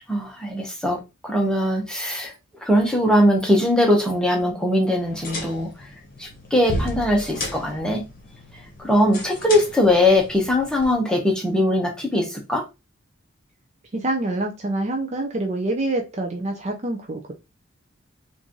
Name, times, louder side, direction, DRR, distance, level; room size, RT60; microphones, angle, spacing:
voice 1, 0.1-2.3 2.6-5.9 6.2-8.0 8.8-12.6, left 1 dB, 5° left, 0.8 m, -21 dB
sound 1, 5.0-10.9, left 1 dB, 45° left, 1.0 m, -34 dB
voice 2, 13.9-17.3, right 2 dB, 35° right, 0.5 m, -26 dB
3.0 x 2.6 x 3.6 m
head